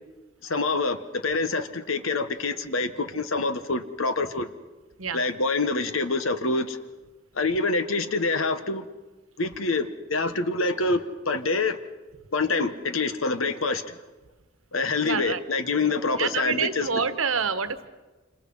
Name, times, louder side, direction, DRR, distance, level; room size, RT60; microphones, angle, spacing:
voice 1, 0.4-4.5 5.1-6.8 7.3-8.9 9.4-11.8 12.3-13.9 14.7-17.0, left 3 dB, 85° left, 1.3 m, -26 dB
voice 2, 15.0-15.4 16.2-17.9, right 6 dB, 85° right, 1.3 m, -27 dB
28.0 x 26.5 x 5.6 m
head